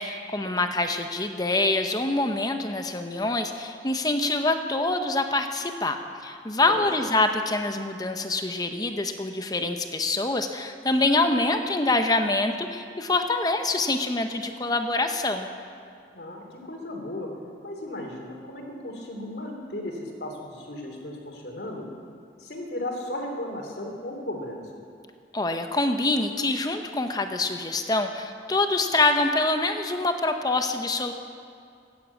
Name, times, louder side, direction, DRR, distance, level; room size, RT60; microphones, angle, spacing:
voice 1, 0.0-6.0 6.2-15.5 25.3-31.1, left 2 dB, 20° left, 6 dB, 0.8 m, -25 dB
voice 2, 6.6-7.1 16.1-17.3 17.6-21.9 22.4-24.6, left 1 dB, 70° left, 2 dB, 2.9 m, -35 dB
15.0 x 10.5 x 8.4 m, 2.5 s
head